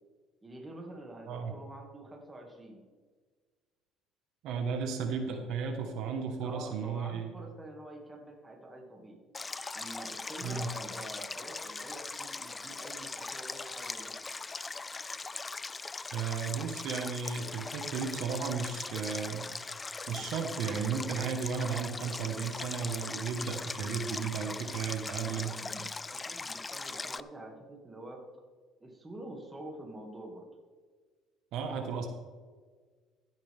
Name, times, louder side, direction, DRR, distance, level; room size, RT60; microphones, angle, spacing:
voice 1, 0.4-2.8 6.4-9.2 9.7-14.2 25.2-28.3 28.8-30.5, right 1 dB, 15° right, 0 dB, 2.4 m, -47 dB
voice 2, 4.4-7.3 10.4-10.7 16.1-19.5 20.1-25.7 31.5-32.1, right 6 dB, 70° right, 3 dB, 1.5 m, -34 dB
Stream, 9.3-27.2, left 3 dB, 20° left, 0.4 m, -40 dB
15.5 x 9.1 x 3.7 m, 1.5 s
cardioid pair, 120°, 0 cm